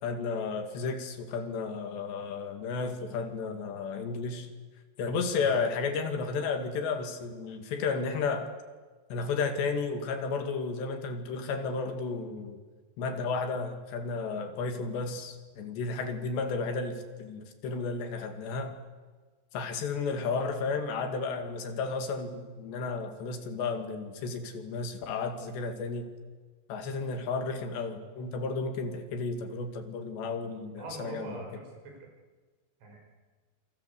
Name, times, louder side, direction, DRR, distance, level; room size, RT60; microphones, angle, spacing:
voice 1, 0.0-4.5 5.0-8.5 9.1-12.6 13.0-18.8 19.5-26.1 26.7-31.4, left 4 dB, 70° left, 7 dB, 4.3 m, -33 dB
voice 2, 30.8-32.1 32.8-33.0, right 3 dB, 90° right, 2 dB, 8.1 m, -42 dB
27.5 x 24.5 x 8.3 m, 1.4 s
omnidirectional pair, 5.3 m